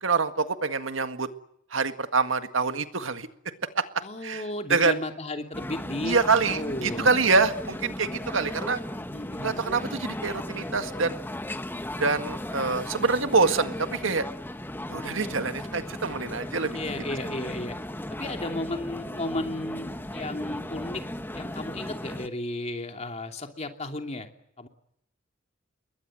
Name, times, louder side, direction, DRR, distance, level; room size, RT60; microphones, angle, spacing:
voice 1, 0.0-1.3 1.7-3.3 3.8-3.9 4.2-4.4 4.7-5.0 6.0-8.8 9.4-11.2 12.0-14.3 14.9-16.8, right 4 dB, 85° right, 9 dB, 1.8 m, -25 dB
voice 2, 4.0-7.1 9.0-9.8 16.7-17.7 18.1-21.0 21.3-24.3 24.6-24.7, left 2 dB, 35° left, 5 dB, 2.9 m, -34 dB
sound 1, 5.5-22.3, left 1 dB, 10° left, 1.2 m, -36 dB
28.5 x 22.0 x 7.7 m, 0.75 s
head